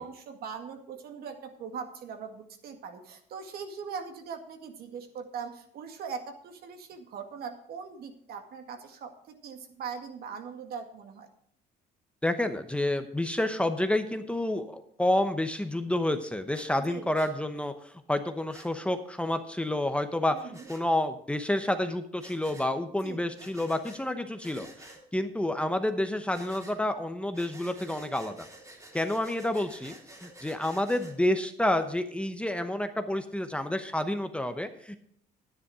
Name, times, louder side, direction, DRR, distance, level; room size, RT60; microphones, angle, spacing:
voice 1, 0.0-11.3 16.8-17.1 20.3-20.6 23.0-23.3, right 6 dB, 65° right, 5 dB, 1.9 m, -41 dB
voice 2, 12.2-28.5 28.9-29.9 30.2-35.0, left 1 dB, 5° left, 8 dB, 0.8 m, -29 dB
Breathing, 16.5-16.7 17.1-17.3 18.5-18.7 20.5-20.8 22.2-22.7 23.4-24.0 24.4-25.0 26.3-26.8 27.3-31.1, right 1 dB, 20° right, 3.0 m, -50 dB
10.0 x 10.0 x 4.8 m, 0.65 s
cardioid pair, 110°, 17 cm